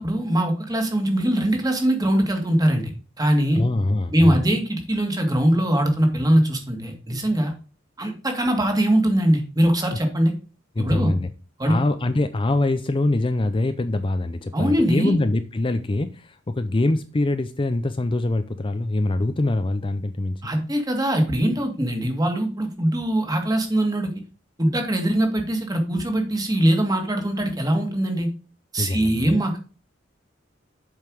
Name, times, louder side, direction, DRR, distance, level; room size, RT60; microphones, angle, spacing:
voice 1, 0.0-2.9 3.2-3.6 4.1-7.5 8.0-10.3 10.8-11.1 11.6-11.8 14.5-15.2 20.4-24.1 24.6-28.3 28.7-29.6, right 1 dB, 20° right, 2.0 m, -21 dB
voice 2, 3.5-4.5 9.8-10.0 10.8-11.3 11.7-20.4 28.8-29.4, left 2 dB, 25° left, 0.5 m, -24 dB
7.6 x 5.6 x 4.8 m
head